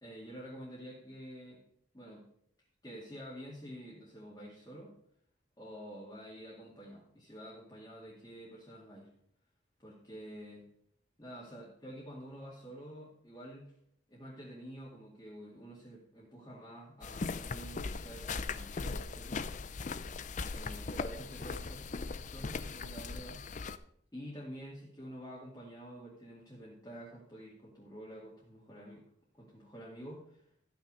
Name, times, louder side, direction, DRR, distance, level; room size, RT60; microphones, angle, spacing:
voice 1, 0.0-1.6 1.9-2.3 2.8-5.0 5.6-9.1 9.8-10.7 11.2-13.7 14.1-19.5 20.5-23.4 24.1-29.1 29.3-30.5, equal, 15° left, -7 dB, 2.2 m, -48 dB
sound 1, 17.0-23.8, left 4 dB, 40° left, 0.5 m, -39 dB
14.0 x 5.9 x 5.4 m, 0.67 s
head